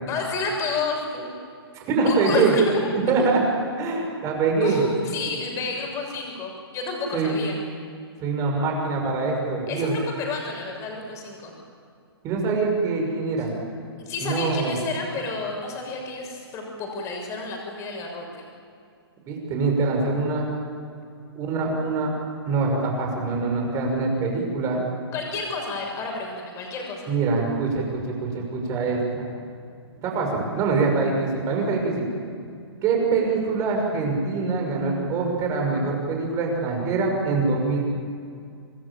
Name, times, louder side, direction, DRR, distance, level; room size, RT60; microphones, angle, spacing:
voice 1, 0.1-1.3 2.0-2.8 3.2-3.3 4.6-7.6 9.7-11.5 13.4-13.5 14.0-18.4 25.1-27.1, left 3 dB, 20° left, 1 dB, 6.7 m, -30 dB
voice 2, 1.7-2.5 2.9-3.4 3.8-4.8 7.1-7.4 8.2-9.9 12.2-13.5 14.2-14.8 19.3-20.5 21.3-22.1 22.4-24.8 27.1-29.2 30.0-32.1 32.8-37.8, right 4 dB, 25° right, 1 dB, 6.3 m, -24 dB
26.5 x 20.0 x 9.0 m, 2.3 s
hypercardioid pair, 150°, 14 cm